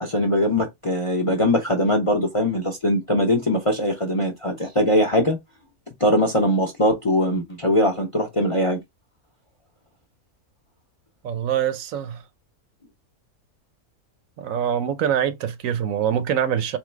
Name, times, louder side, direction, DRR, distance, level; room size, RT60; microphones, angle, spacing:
voice 1, 0.0-5.4 6.0-8.8, left 1 dB, 35° left, 0.5 m, -21 dB
voice 2, 11.2-12.2 14.4-16.8, right 9 dB, 70° right, 0.9 m, -24 dB
3.8 x 2.9 x 3.2 m
omnidirectional pair, 1.5 m